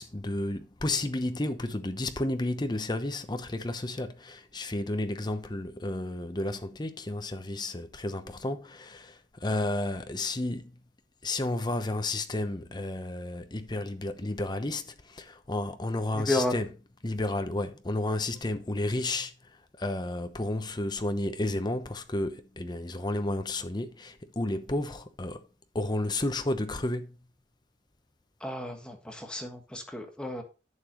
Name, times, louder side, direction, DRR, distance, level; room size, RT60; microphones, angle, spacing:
voice 1, 0.0-10.7 11.2-16.7 17.0-19.3 19.8-25.4 25.7-27.2, left 2 dB, 25° left, 0.9 m, -32 dB
voice 2, 16.1-16.6 28.4-30.4, left 1 dB, 5° left, 1.6 m, -32 dB
11.0 x 7.1 x 3.1 m
head